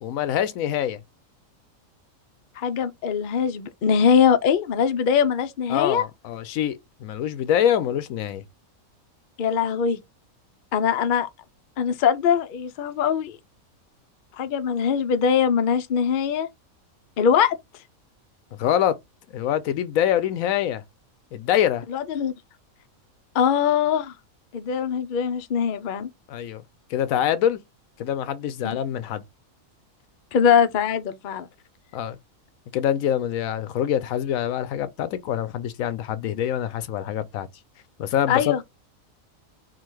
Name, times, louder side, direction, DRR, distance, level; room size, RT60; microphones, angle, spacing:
voice 1, 0.0-1.0 5.7-8.4 18.6-19.0 19.3-20.8 21.3-21.8 26.3-26.6 26.9-27.6 28.0-29.2 31.9-32.2 32.7-37.5 38.0-38.6, left 10 dB, 75° left, 1.0 m, -25 dB
voice 2, 2.6-6.0 9.4-10.0 10.7-11.3 11.8-13.4 14.4-16.5 17.2-17.6 21.9-22.3 23.3-24.1 24.5-26.1 28.6-28.8 30.3-31.5 38.3-38.6, left 7 dB, 60° left, 0.5 m, -22 dB
3.7 x 2.3 x 4.5 m
omnidirectional pair, 1.5 m